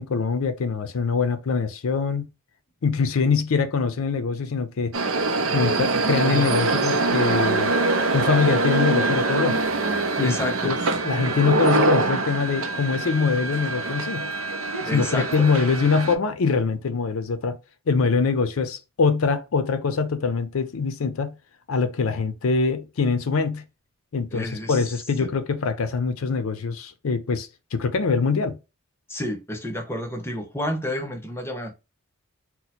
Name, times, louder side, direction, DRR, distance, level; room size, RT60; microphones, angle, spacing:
voice 1, 0.0-2.3 2.8-4.9 5.5-7.7 8.1-9.6 10.2-10.8 11.0-14.3 14.9-17.6 17.9-21.3 21.7-23.6 24.1-28.6, left 5 dB, 85° left, 0.5 m, -23 dB
sound 1, 4.9-16.1, right 3 dB, 75° right, 0.5 m, -24 dB
voice 2, 10.2-10.7 14.9-15.5 24.3-24.8 25.2-25.3 29.1-31.7, left 1 dB, 10° left, 0.6 m, -30 dB
2.8 x 2.1 x 4.0 m
head